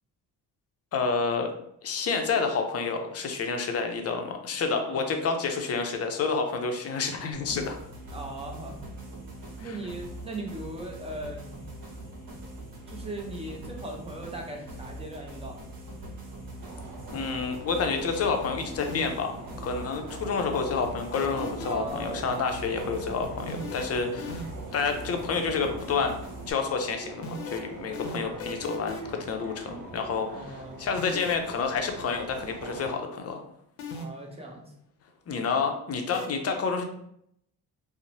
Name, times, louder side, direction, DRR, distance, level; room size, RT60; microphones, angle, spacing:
voice 1, 0.9-1.5 1.8-7.8 9.6-9.8 17.1-24.5 24.7-26.2 26.5-33.4 35.3-36.8, left 5 dB, 40° left, 5 dB, 0.5 m, -29 dB
sound 1, 7.3-26.5, right 1 dB, 55° right, 1.0 m, -42 dB
voice 2, 8.1-8.8 9.6-11.7 12.9-15.7 21.6-22.5 30.3-30.8 33.9-34.7, right 1 dB, 15° right, -1 dB, 0.6 m, -39 dB
sound 2, 16.6-32.9, right 3 dB, 90° right, 0.8 m, -43 dB
sound 3, 18.8-19.3 21.1-22.0 23.5-24.7 27.2-29.2 31.0-31.5 33.8-34.3 36.1-36.3, left 3 dB, 85° left, 0.6 m, -37 dB
2.9 x 2.0 x 2.6 m, 0.71 s
cardioid pair, 90°, 40 cm